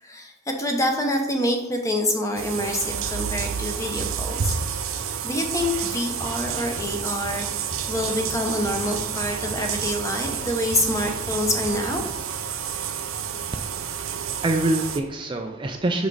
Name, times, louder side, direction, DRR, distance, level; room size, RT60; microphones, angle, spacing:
voice 1, 0.0-4.5 5.2-7.5 7.9-12.0, left 1 dB, 15° left, 3 dB, 0.8 m, -26 dB
sound 1, 2.4-15.0, right 8 dB, 90° right, 0.6 m, -30 dB
sound 2, 6.2-12.6, equal, 70° left, 1.4 m, -39 dB
voice 2, 13.5-16.1, right 2 dB, 25° right, 4 dB, 0.4 m, -26 dB
6.2 x 5.0 x 4.0 m, 0.98 s
head